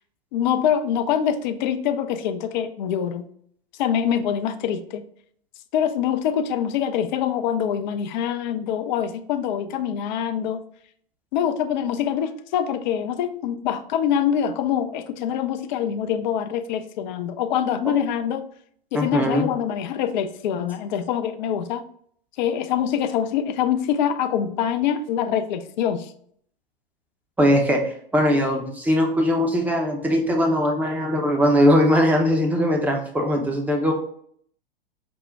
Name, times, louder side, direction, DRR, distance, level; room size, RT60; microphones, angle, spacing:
voice 1, 0.3-3.3 3.8-5.0 5.7-10.6 11.3-18.4 18.9-21.8 22.4-26.1, left 9 dB, 50° left, 9 dB, 0.5 m, -24 dB
voice 2, 18.9-19.5 27.4-33.9, equal, 5° right, 1 dB, 0.6 m, -20 dB
5.1 x 2.1 x 3.4 m, 0.62 s
hypercardioid pair, 105°, 30 cm